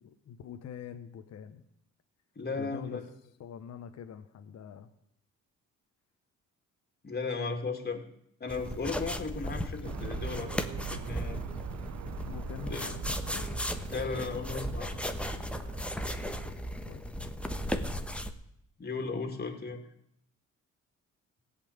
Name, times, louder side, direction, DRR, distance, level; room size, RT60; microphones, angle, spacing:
voice 1, 0.0-1.6 2.5-3.0 3.4-4.9 12.3-13.6 16.5-16.6 16.9-17.0, left 8 dB, 60° left, 7 dB, 1.1 m, -45 dB
voice 2, 2.4-3.1 7.0-8.0 8.4-11.4 12.7-12.9 13.9-15.1 18.8-19.8, left 4 dB, 35° left, 4 dB, 2.5 m, -36 dB
sound 1, 8.5-18.3, equal, 5° left, 1.2 m, -36 dB
sound 2, 9.8-16.5, right 12 dB, 70° right, 0.8 m, -44 dB
sound 3, 10.1-16.7, right 9 dB, 45° right, 1.7 m, -55 dB
16.5 x 5.8 x 8.8 m, 0.76 s
cardioid pair, 90°, 30 cm